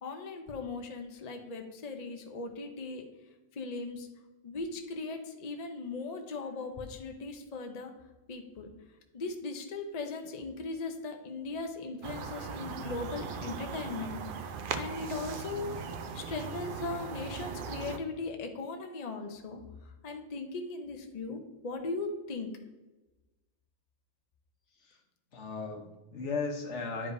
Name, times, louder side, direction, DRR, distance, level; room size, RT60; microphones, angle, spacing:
voice 1, 0.0-3.0 3.6-4.1 4.4-7.9 8.3-8.7 9.1-14.2 14.7-15.8 16.1-19.6 20.0-21.4 21.6-22.5, left 3 dB, 40° left, 4 dB, 0.7 m, -38 dB
sound 1, 12.0-18.0, right 5 dB, 60° right, 0.6 m, -39 dB
voice 2, 25.3-27.1, left 4 dB, 70° left, 2 dB, 1.3 m, -36 dB
10.0 x 4.9 x 2.6 m, 1.1 s
omnidirectional pair, 1.3 m